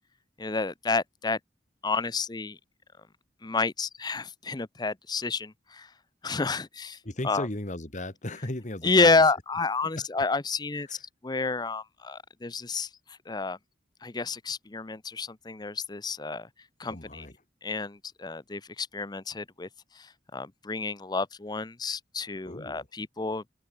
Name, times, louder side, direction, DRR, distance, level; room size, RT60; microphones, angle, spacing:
voice 1, 0.4-1.4 1.8-2.6 3.4-5.9 6.2-7.0 7.2-7.5 8.8-11.0 11.2-12.9 13.3-13.6 14.0-16.5 16.8-17.3 17.6-19.7 20.0-20.1 20.3-23.5, left 3 dB, 25° left, 0.7 m, -29 dB
voice 2, 7.0-9.2 10.0-10.1 10.9-11.0 16.9-17.4 22.4-22.9, left 1 dB, 45° left, 2.1 m, -36 dB
head